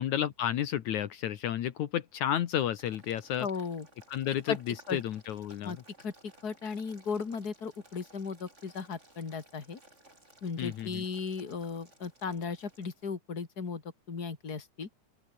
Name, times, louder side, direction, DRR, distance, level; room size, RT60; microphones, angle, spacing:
voice 1, 0.0-3.5 4.1-5.8 10.6-11.0, left 11 dB, 70° left, 2.6 m, -32 dB
Boiling, 2.8-13.1, right 1 dB, 20° right, 8.2 m, -59 dB
voice 2, 3.4-3.9 4.5-4.6 4.9-5.0 5.6-6.1 6.4-9.8 10.4-13.8 14.1-14.9, left 5 dB, 30° left, 3.2 m, -36 dB
open air
omnidirectional pair, 3.5 m